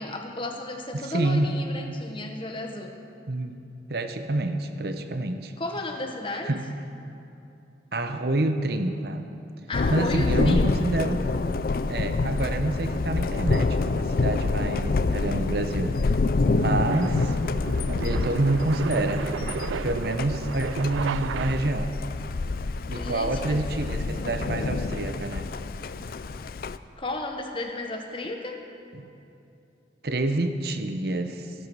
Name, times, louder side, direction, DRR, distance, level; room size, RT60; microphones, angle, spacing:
voice 1, 0.0-3.0 5.6-6.5 9.7-10.9 22.9-23.6 27.0-28.6, left 1 dB, 30° left, 3 dB, 1.2 m, -33 dB
voice 2, 0.9-1.5 3.3-3.6 3.9-5.5 6.5-6.6 7.9-9.3 9.9-11.3 11.9-16.0 16.4-17.3 18.0-19.3 19.8-21.9 22.9-25.5 28.9-29.1 30.0-31.5, right 2 dB, 55° right, 7 dB, 0.8 m, -27 dB
Thunder, 9.7-26.8, left 3 dB, 50° left, 0.4 m, -27 dB
sound 1, 14.4-22.0, right 7 dB, 85° right, 0.3 m, -36 dB
sound 2, 18.5-26.4, equal, 5° right, 1.7 m, -46 dB
14.0 x 12.5 x 6.2 m, 2.8 s
head